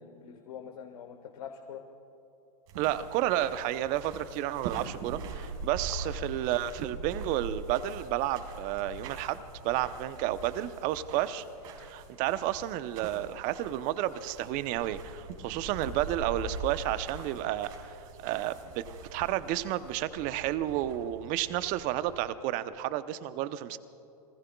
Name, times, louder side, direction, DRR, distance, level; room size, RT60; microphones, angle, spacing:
voice 1, 0.0-1.8 6.1-6.2, left 8 dB, 70° left, 5 dB, 1.3 m, -44 dB
sound 1, 2.7-22.3, right 3 dB, 60° right, 4.5 m, -43 dB
voice 2, 2.8-11.4 11.8-18.8 19.1-23.8, right 13 dB, 40° right, 13 dB, 0.8 m, -31 dB
29.5 x 20.0 x 2.3 m, 2.8 s
hypercardioid pair, 110°, 20 cm